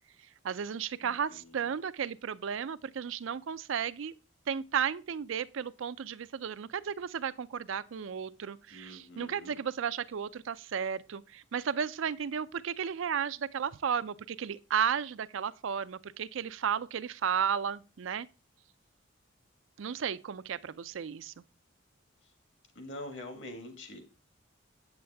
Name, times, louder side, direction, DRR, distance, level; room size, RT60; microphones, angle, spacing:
voice 1, 0.4-4.1 4.5-18.3 19.8-21.3, right 7 dB, 75° right, 0.4 m, -34 dB
voice 2, 1.0-1.7 8.7-9.6 22.2-22.3 22.7-24.0, left 1 dB, 65° left, 1.7 m, -45 dB
8.0 x 7.8 x 3.4 m
head